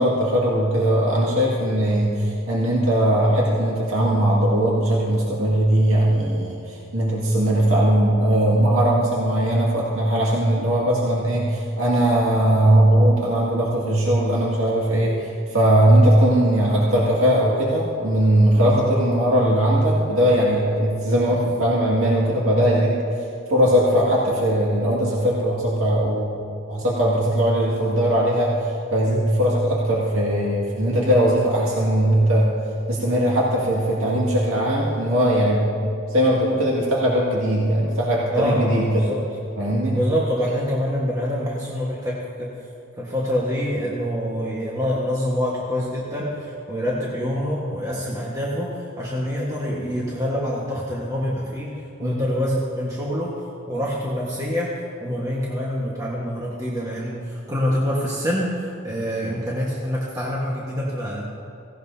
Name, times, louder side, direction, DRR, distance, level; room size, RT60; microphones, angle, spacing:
voice 1, 0.0-26.4 26.7-32.5 32.9-39.1 39.6-40.0 52.0-52.2, right 1 dB, 80° right, -4 dB, 2.0 m, -19 dB
voice 2, 38.3-39.2 39.9-42.6 43.0-61.2, equal, 15° right, -5 dB, 1.4 m, -26 dB
17.0 x 17.0 x 2.8 m, 2.6 s
head